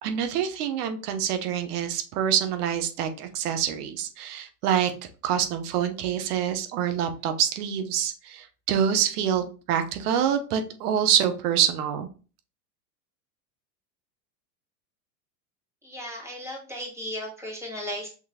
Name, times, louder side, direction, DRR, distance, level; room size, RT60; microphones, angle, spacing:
voice 1, 0.0-4.9 5.2-12.1, right 9 dB, 65° right, 7 dB, 0.9 m, -26 dB
voice 2, 15.8-18.1, equal, 5° right, -1 dB, 1.8 m, -35 dB
6.0 x 3.0 x 2.8 m, 0.36 s
hypercardioid pair, 105°, 49 cm